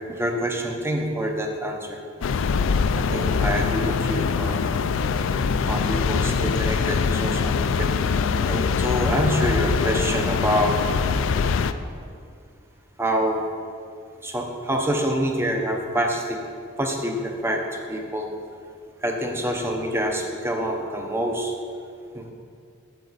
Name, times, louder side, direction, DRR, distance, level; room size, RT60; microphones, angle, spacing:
voice 1, 0.1-2.0 3.0-4.8 5.7-7.9 8.4-10.8 13.0-13.5 14.2-16.4 16.8-18.3 19.0-21.5 22.1-22.3, equal, 10° right, 2 dB, 0.8 m, -26 dB
sound 1, 2.2-11.7, left 5 dB, 65° left, 0.3 m, -23 dB
9.1 x 7.7 x 4.1 m, 2.3 s
head